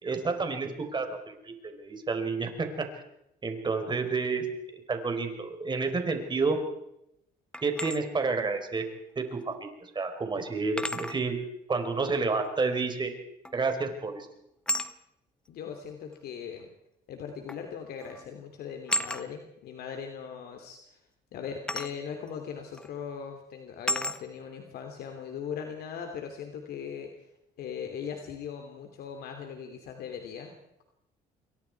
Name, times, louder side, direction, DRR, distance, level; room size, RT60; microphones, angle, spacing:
voice 1, 0.0-2.9 3.4-4.5 4.7-6.6 7.6-8.8 9.2-11.4 11.7-13.1 13.5-14.3, right 4 dB, 25° right, 6 dB, 4.4 m, -30 dB
sound 1, 7.5-8.0 9.5-9.6 10.8-11.2 13.4-13.8 14.7-14.9 16.1-16.2 17.5-17.7 18.0-18.2 18.9-19.2 21.7-21.9 22.7-22.9 23.9-24.2, left 1 dB, 5° left, 1.2 m, -32 dB
voice 2, 15.5-16.7 17.1-21.0 21.3-27.3 27.6-30.5, left 7 dB, 70° left, 4 dB, 3.1 m, -39 dB
27.5 x 23.0 x 4.7 m, 0.82 s
cardioid pair, 110°, 17 cm